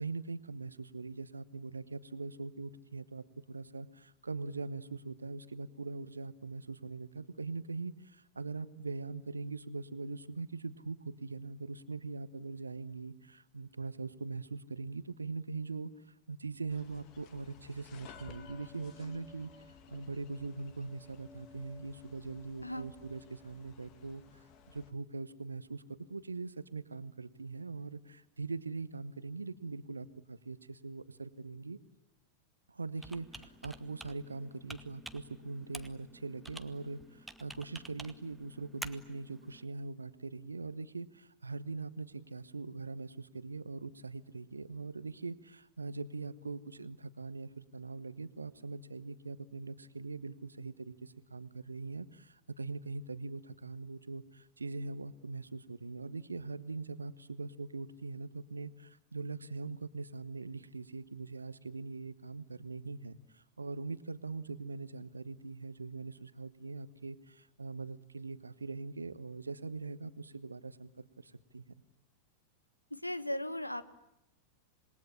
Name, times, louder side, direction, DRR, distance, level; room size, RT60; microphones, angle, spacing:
voice 1, 0.0-19.5 19.9-25.8 26.1-31.8 32.7-70.9 71.2-71.7, right 3 dB, 80° right, 15 dB, 1.0 m, -42 dB
sound 1, 16.7-24.9, left 6 dB, 40° left, 2.2 m, -55 dB
Computer keyboard, 33.0-39.6, right 1 dB, 5° right, 1.2 m, -50 dB
voice 2, 72.9-73.8, left 1 dB, 85° left, 15 dB, 1.2 m, -37 dB
27.0 x 21.0 x 9.9 m, 0.83 s
figure-of-eight pair, 90°, 0 cm